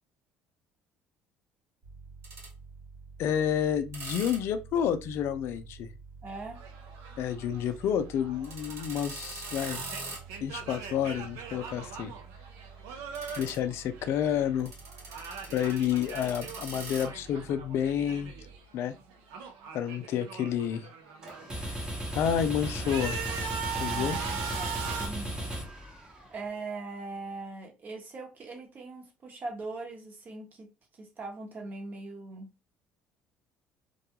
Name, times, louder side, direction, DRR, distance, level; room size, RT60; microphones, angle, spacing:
sound 1, 1.8-18.6, right 3 dB, 60° right, 1.4 m, -45 dB
voice 1, 3.2-5.9 7.2-9.8 10.4-12.1 13.4-14.7 15.1-15.3 15.5-18.3 18.7-18.9 19.7-20.9 22.1-23.2 23.8-24.2, left 9 dB, 65° left, 0.4 m, -29 dB
voice 2, 6.2-6.6 23.9-25.5 26.3-32.5, right 3 dB, 40° right, 1.0 m, -41 dB
sound 2, 6.6-14.6 14.8-18.6 18.9-21.5 22.1-25.1, right 6 dB, 85° right, 0.5 m, -41 dB
sound 3, 21.2-26.4, right 1 dB, 15° right, 0.9 m, -36 dB
2.3 x 2.2 x 2.8 m
supercardioid pair, 85°, 5 cm